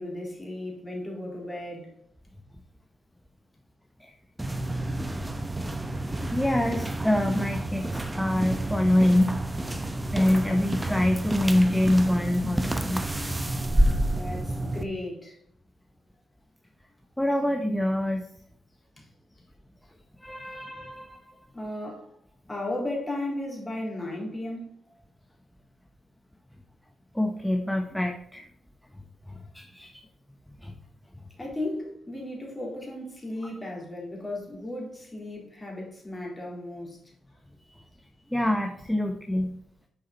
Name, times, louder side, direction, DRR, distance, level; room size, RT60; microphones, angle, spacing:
voice 1, 0.0-1.9 14.1-15.4 19.0-19.1 21.5-22.1 22.5-24.7 29.3-29.4 31.4-37.0, left 1 dB, 20° left, 3.8 m, -35 dB
sound 1, 4.4-14.8, right 1 dB, 15° right, 1.0 m, -29 dB
voice 2, 6.3-9.4 10.1-13.0 17.2-18.3 20.2-21.3 27.1-28.5 29.3-30.0 30.6-30.7 37.7-37.9 38.3-39.6, left 1 dB, 5° left, 1.1 m, -25 dB
7.8 x 6.6 x 4.1 m
hypercardioid pair, 40°, 0 cm